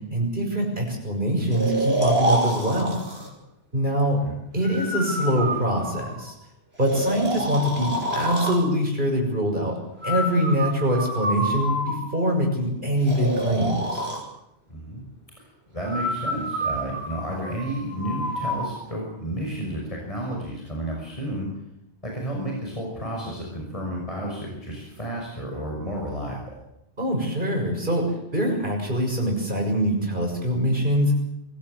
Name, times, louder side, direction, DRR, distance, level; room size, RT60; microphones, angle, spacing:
voice 1, 0.1-3.0 3.7-4.2 4.5-6.3 6.8-9.7 10.0-14.0 27.0-28.0 28.3-31.3, equal, 45° right, 1 dB, 6.7 m, -24 dB
Breathing, 1.5-3.3 4.6-6.3 6.8-8.6 10.0-12.3 13.1-14.2 15.8-18.7, right 1 dB, 60° right, 5.9 m, -28 dB
voice 2, 14.7-15.1 15.4-21.5 22.0-26.6, right 1 dB, 30° left, -1 dB, 6.1 m, -32 dB
24.0 x 17.0 x 8.1 m, 0.80 s
omnidirectional pair, 1.2 m